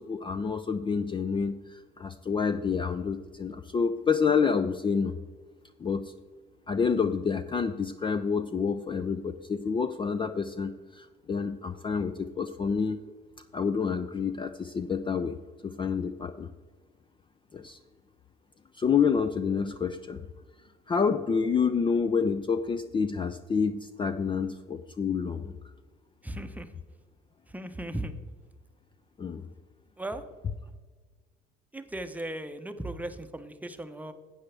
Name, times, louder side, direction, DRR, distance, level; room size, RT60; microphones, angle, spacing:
voice 1, 0.0-5.1 5.8-6.1 6.7-13.0 13.5-15.4 15.6-16.5 17.5-17.8 18.7-20.2 20.9-25.5 29.2-29.5, left 6 dB, 25° left, 10 dB, 0.4 m, -28 dB
voice 2, 26.2-26.7 27.5-28.1 30.0-30.2 31.7-34.1, right 1 dB, 10° right, 8 dB, 0.8 m, -37 dB
12.0 x 8.6 x 3.3 m, 1.4 s
supercardioid pair, 90°, 20 cm